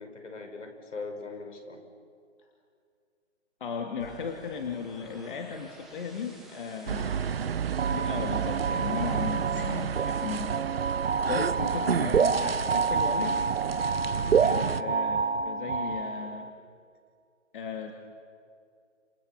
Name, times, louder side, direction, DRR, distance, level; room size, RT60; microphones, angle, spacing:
voice 1, 0.0-1.8, left 3 dB, 75° left, 5 dB, 5.4 m, -41 dB
voice 2, 3.6-7.5 7.9-10.6 11.3-13.5 14.1-16.5 17.5-17.9, left 6 dB, 45° left, 3 dB, 2.4 m, -36 dB
sound 1, 4.0-10.6, right 2 dB, ahead, 1.3 m, -54 dB
sound 2, 6.9-14.8, right 7 dB, 50° right, 0.9 m, -32 dB
sound 3, 7.8-16.5, right 5 dB, 70° right, 1.1 m, -28 dB
29.0 x 27.0 x 7.1 m, 2.3 s
hypercardioid pair, 155°, 37 cm